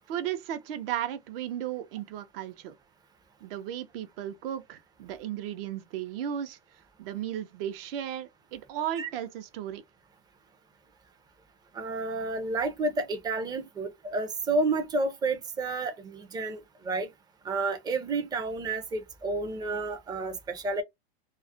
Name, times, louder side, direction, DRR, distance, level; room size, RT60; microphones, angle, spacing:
voice 1, 0.1-2.8 3.4-6.6 7.0-9.8, right 10 dB, 60° right, 0.6 m, -35 dB
voice 2, 11.7-17.1 17.4-20.8, right 3 dB, 15° right, 0.4 m, -30 dB
2.3 x 2.0 x 2.6 m
hypercardioid pair, 115°, 33 cm